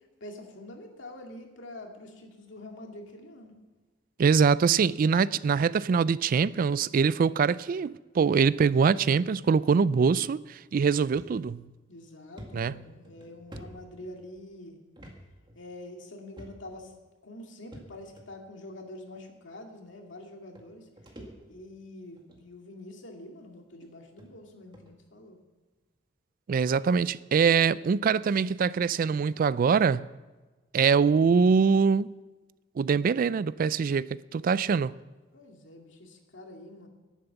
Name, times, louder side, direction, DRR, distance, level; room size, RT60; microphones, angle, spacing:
voice 1, 0.2-3.5 11.9-14.8 15.6-16.9 17.2-20.9 21.5-25.4 35.3-36.9, left 1 dB, 90° left, 2.1 m, -46 dB
voice 2, 4.2-11.6 12.5-12.7 26.5-30.1 30.7-32.2 32.8-34.9, right 5 dB, 50° right, 0.3 m, -23 dB
sound 1, 11.2-11.3 11.8-11.9 12.4-14.4 15.0-15.2 15.5-15.6 16.4-16.8 17.7-18.3 19.1-19.2 20.2-20.3 20.6-21.7 22.2-22.5 23.2-23.3 23.8-23.9 24.2-24.3 24.7-24.9, equal, 25° right, 2.0 m, -48 dB
11.0 x 10.0 x 7.0 m
head